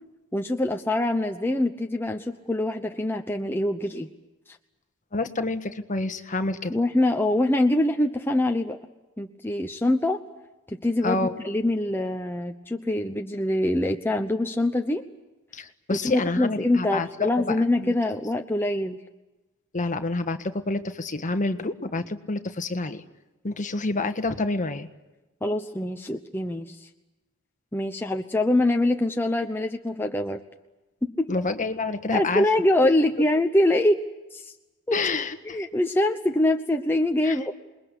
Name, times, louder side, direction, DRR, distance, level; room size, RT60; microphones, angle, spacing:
voice 1, 0.3-4.1 6.7-8.8 9.2-10.2 10.7-15.0 15.9-19.0 25.4-26.9 27.7-30.4 31.0-31.3 32.1-34.0 34.3-34.5 34.9-35.0 35.5-37.5, left 1 dB, 10° left, 4 dB, 0.9 m, -24 dB
voice 2, 5.1-6.8 11.0-11.4 15.5-17.9 19.7-23.0 23.4-24.9 31.3-32.4 34.9-35.7 37.2-37.4, left 3 dB, 35° left, 9 dB, 1.5 m, -28 dB
27.5 x 21.5 x 8.3 m, 1.1 s
head